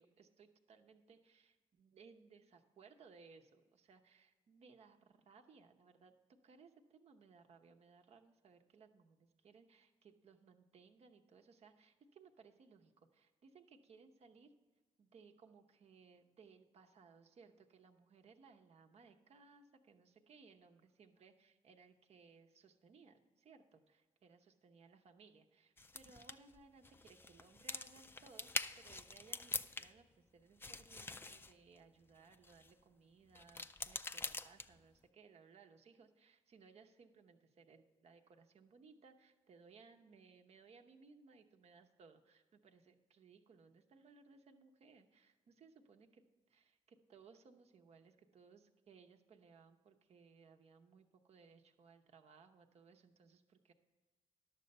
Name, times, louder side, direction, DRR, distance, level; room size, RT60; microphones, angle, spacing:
voice 1, 0.0-6.1 6.4-14.5 15.0-53.7, right 5 dB, 55° right, 5 dB, 0.9 m, -63 dB
sound 1, 25.8-30.2 30.4-32.7 33.3-35.0, left 3 dB, 15° left, 0.4 m, -45 dB
11.0 x 6.8 x 5.4 m, 1.3 s
supercardioid pair, 65°, 13 cm